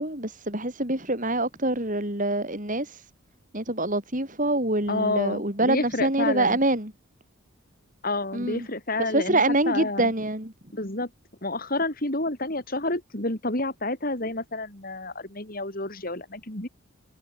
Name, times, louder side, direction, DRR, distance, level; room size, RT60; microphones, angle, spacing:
voice 1, 0.0-2.9 3.5-6.9 8.3-8.7 9.1-10.5, right 2 dB, 35° right, 4.7 m, -25 dB
voice 2, 4.9-6.6 8.0-10.1 10.7-11.1 11.4-16.7, left 2 dB, 40° left, 3.9 m, -29 dB
head